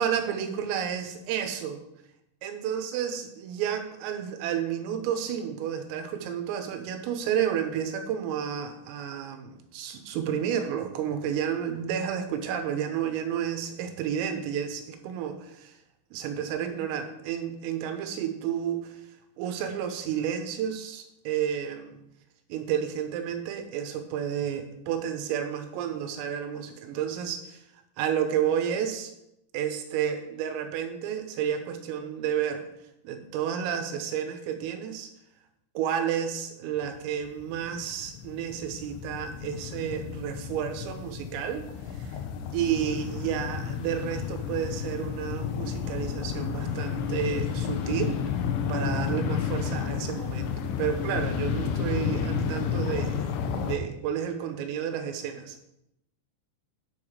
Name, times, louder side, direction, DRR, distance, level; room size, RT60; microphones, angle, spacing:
voice 1, 0.0-1.8 2.4-15.7 16.1-18.9 19.4-22.0 22.5-27.6 28.0-29.1 29.5-32.7 33.1-35.1 35.8-41.7 42.0-42.2 42.5-48.2 48.7-53.2 53.6-55.6, right 9 dB, 85° right, 7 dB, 3.7 m, -31 dB
sound 1, 36.8-36.9 37.2-53.8, left 7 dB, 75° left, 3.0 m, -31 dB
10.5 x 6.8 x 5.0 m, 0.82 s
omnidirectional pair, 5.9 m